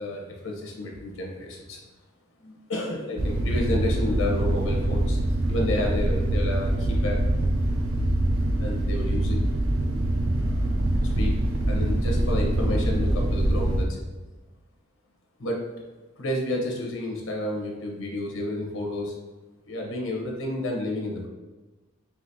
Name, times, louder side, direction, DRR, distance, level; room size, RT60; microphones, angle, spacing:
voice 1, 0.0-1.8 2.4-5.2 5.5-7.2 8.6-9.4 10.4-10.7 11.0-14.0 15.4-15.7 16.2-19.1 19.7-21.3, left 1 dB, 85° left, 0 dB, 0.9 m, -31 dB
sound 1, 3.2-13.8, right 1 dB, 80° right, 0.6 m, -24 dB
5.0 x 2.9 x 2.7 m, 1.2 s
head